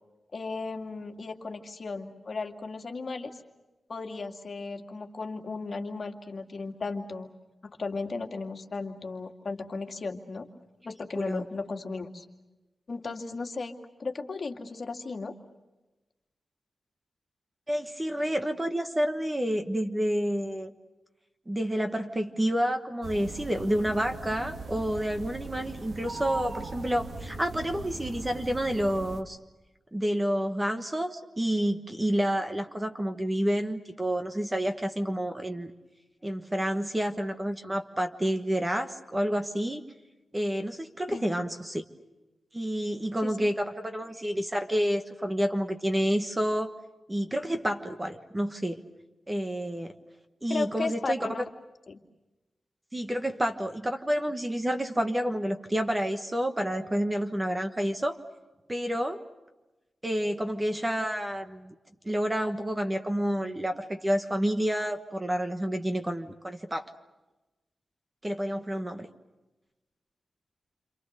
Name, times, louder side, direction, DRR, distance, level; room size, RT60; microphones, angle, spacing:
voice 1, 0.3-3.4 3.9-7.3 7.6-10.5 10.8-12.2 12.9-15.3 41.1-41.2 43.2-43.3 50.5-51.4 51.9-52.0, left 4 dB, 45° left, 4 dB, 2.3 m, -35 dB
voice 2, 17.7-20.7 21.5-29.4 29.9-35.7 36.2-39.8 40.3-41.8 42.5-46.7 47.1-48.8 49.3-49.9 50.4-51.3 52.9-58.2 58.7-59.2 60.0-61.7 62.0-66.9 68.2-69.1, equal, 15° right, 6 dB, 1.3 m, -29 dB
sound 1, 23.0-29.2, right 3 dB, 60° right, 2.0 m, -39 dB
29.0 x 27.5 x 6.6 m, 1.1 s
wide cardioid pair, 170°, 0 cm